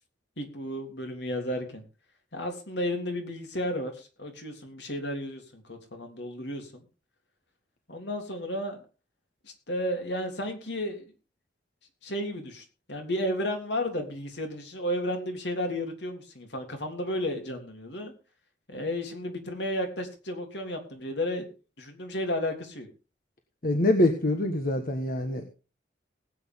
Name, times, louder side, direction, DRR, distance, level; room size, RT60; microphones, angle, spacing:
voice 1, 0.4-1.8 2.3-6.8 7.9-8.8 9.4-11.1 12.0-18.1 18.7-21.5 21.8-22.9, left 1 dB, 70° left, 4 dB, 3.3 m, -33 dB
voice 2, 23.6-25.4, left 1 dB, 50° left, 5 dB, 1.5 m, -25 dB
20.0 x 8.6 x 3.7 m, 0.33 s
head